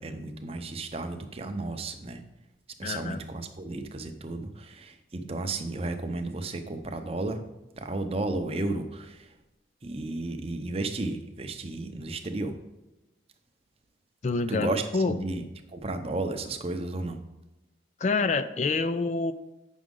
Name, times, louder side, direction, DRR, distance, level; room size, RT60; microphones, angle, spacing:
voice 1, 0.0-2.2 2.8-7.4 7.8-9.3 9.8-12.5 14.5-15.4 15.7-17.2, right 2 dB, 30° right, 7 dB, 0.6 m, -33 dB
voice 2, 2.8-3.2 14.2-15.2 18.0-19.3, left 3 dB, 40° left, 11 dB, 0.3 m, -27 dB
9.1 x 6.2 x 3.7 m, 1.0 s
head